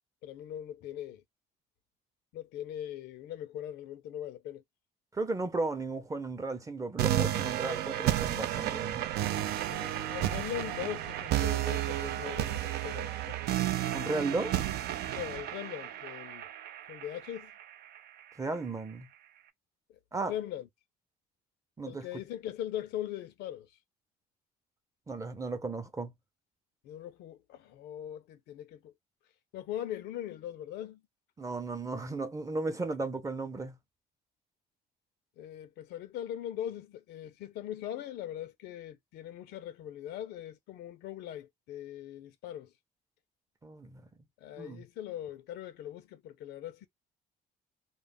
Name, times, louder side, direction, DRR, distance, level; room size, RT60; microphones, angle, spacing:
voice 1, 0.2-1.2 2.3-4.6 8.4-8.8 9.7-13.6 15.1-16.5 16.9-17.5 19.9-20.0 20.3-20.7 21.9-23.7 26.8-28.9 29.5-31.0 35.4-42.7 44.4-46.9, left 11 dB, 80° left, 0.6 m, -41 dB
voice 2, 5.1-9.0 13.9-14.6 18.4-19.1 20.1-20.3 21.8-22.1 25.1-26.1 31.4-33.8 43.6-44.0 44.6-44.8, right 3 dB, 20° right, 0.6 m, -35 dB
sound 1, 7.0-18.0, right 13 dB, 70° right, 0.4 m, -32 dB
2.4 x 2.0 x 3.4 m
cardioid pair, 110°, 17 cm